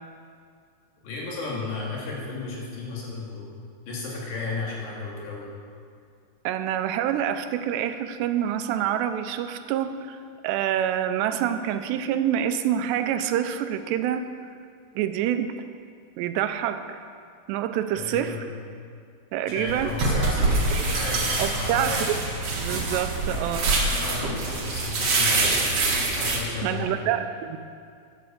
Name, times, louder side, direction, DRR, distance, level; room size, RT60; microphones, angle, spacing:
voice 1, 1.0-3.5 3.9-5.5 17.9-18.5 19.4-21.2 21.5-22.0 23.8-25.7 26.2-27.1, left 3 dB, 80° left, -4 dB, 5.0 m, -34 dB
voice 2, 6.4-10.2 10.4-14.3 15.0-15.5 16.2-17.0 17.5-18.4 19.3-19.9 21.4-22.3 22.6-23.7 26.6-27.6, right 10 dB, 85° right, 9 dB, 2.8 m, -26 dB
sound 1, 19.7-26.4, right 2 dB, 45° right, 2.3 m, -25 dB
11.5 x 10.0 x 7.9 m, 2.3 s
omnidirectional pair, 4.9 m